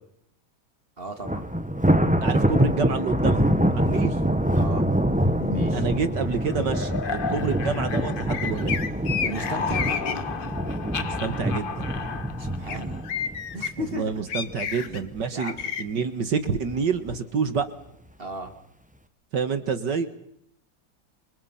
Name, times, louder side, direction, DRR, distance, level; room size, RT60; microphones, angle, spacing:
voice 1, 1.0-1.5 4.5-4.9 5.5-5.9 9.2-9.9 12.4-13.0 13.5-14.3 14.7-15.7 18.2-18.5, right 1 dB, 30° right, 6 dB, 3.0 m, -36 dB
Thunder, 1.2-14.5 14.9-15.2 15.6-15.7 16.6-17.1, equal, 5° right, 1.4 m, -25 dB
voice 2, 2.2-3.5 3.7-4.2 5.7-8.8 11.0-11.9 13.8-15.5 15.8-17.7 19.3-20.1, right 5 dB, 65° right, 11 dB, 2.2 m, -28 dB
sound 1, 5.4-8.9 9.1-13.2, left 5 dB, 35° left, 0.9 m, -34 dB
sound 2, 8.3-10.1 12.7-12.8 13.0-13.7 14.3-15.0 15.4-15.8, left 7 dB, 85° left, 2.3 m, -30 dB
29.0 x 26.5 x 5.8 m, 0.74 s
omnidirectional pair, 2.1 m